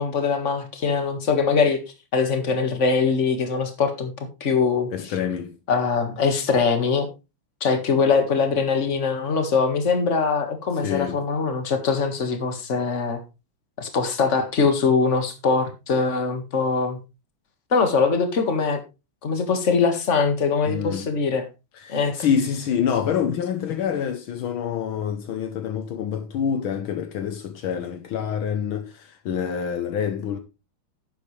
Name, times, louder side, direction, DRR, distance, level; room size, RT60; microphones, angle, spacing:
voice 1, 0.0-1.8 2.1-4.1 4.4-5.1 5.7-7.1 7.6-13.2 13.8-17.0 17.7-18.8 19.2-21.4 21.9-22.2, left 5 dB, 35° left, 1.9 m, -22 dB
voice 2, 4.9-5.6 10.8-11.2 20.6-21.1 21.8-30.4, left 8 dB, 70° left, 1.7 m, -26 dB
11.0 x 8.7 x 3.3 m
omnidirectional pair, 2.4 m